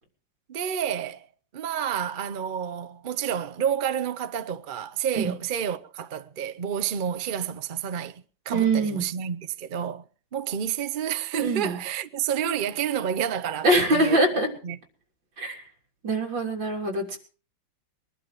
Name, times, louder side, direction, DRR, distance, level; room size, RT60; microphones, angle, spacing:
voice 1, 0.5-1.3 1.5-10.0 10.3-14.2 14.6-14.8, right 9 dB, 55° right, 0.5 m, -29 dB
voice 2, 8.5-9.1 11.4-11.8 13.6-14.5 15.4-15.6 16.0-17.2, right 2 dB, 75° right, 4.0 m, -23 dB
22.0 x 11.5 x 4.7 m
omnidirectional pair, 2.0 m